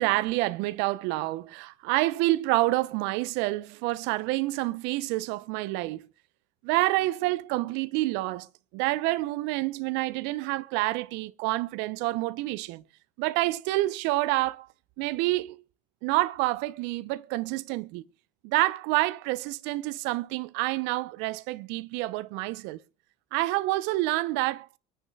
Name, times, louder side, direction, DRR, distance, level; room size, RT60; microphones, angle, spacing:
voice 1, 0.0-6.1 6.6-12.8 13.2-14.7 15.0-15.6 16.0-18.0 18.4-22.8 23.3-24.8, right 19 dB, 65° right, 0.9 m, -28 dB
24.0 x 10.0 x 2.4 m
hypercardioid pair, 70°, 20 cm